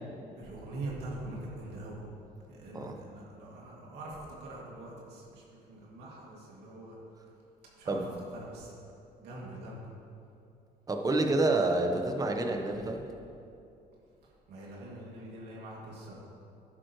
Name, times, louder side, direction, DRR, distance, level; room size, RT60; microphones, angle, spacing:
voice 1, 0.4-2.0 2.5-7.0 7.8-8.7 9.2-9.9 14.5-16.1, right 2 dB, 80° right, -4 dB, 2.5 m, -43 dB
voice 2, 2.7-3.0 7.9-8.1 10.9-13.1, right 2 dB, 20° right, 4 dB, 1.0 m, -28 dB
11.0 x 11.0 x 3.2 m, 2.6 s
cardioid pair, 110°, 17 cm